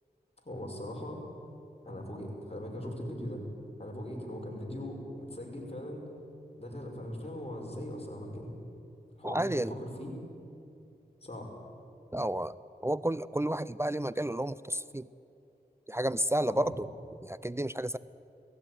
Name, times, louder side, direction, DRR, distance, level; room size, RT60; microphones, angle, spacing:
voice 1, 0.4-1.2 1.8-3.5 3.8-6.1 6.6-8.5 9.2-10.1 11.2-11.5 16.5-16.8, left 1 dB, 35° left, 0 dB, 5.4 m, -40 dB
voice 2, 9.2-9.7 12.1-12.6 12.8-15.1 15.9-16.9 17.2-18.0, right 1 dB, 15° right, 17 dB, 0.5 m, -31 dB
18.0 x 15.5 x 9.9 m, 2.7 s
cardioid pair, 40°, 17 cm